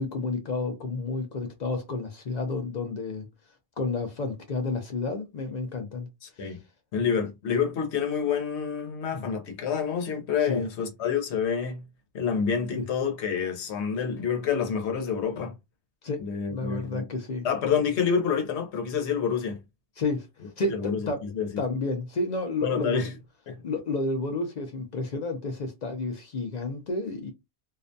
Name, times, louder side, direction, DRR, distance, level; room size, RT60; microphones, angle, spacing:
voice 1, 0.0-3.3 3.8-6.1 9.1-9.3 10.4-10.6 12.7-12.8 16.0-17.5 20.0-20.3 20.6-20.8 21.1-21.2 21.6-23.1 23.6-27.3, left 3 dB, 55° left, 0.5 m, -31 dB
voice 2, 6.2-6.6 6.9-11.8 12.1-15.5 16.2-17.0 17.4-19.6 20.7-21.6 22.6-23.1 23.5-23.6, left 6 dB, 90° left, 1.0 m, -28 dB
2.4 x 2.1 x 2.5 m
omnidirectional pair, 1.1 m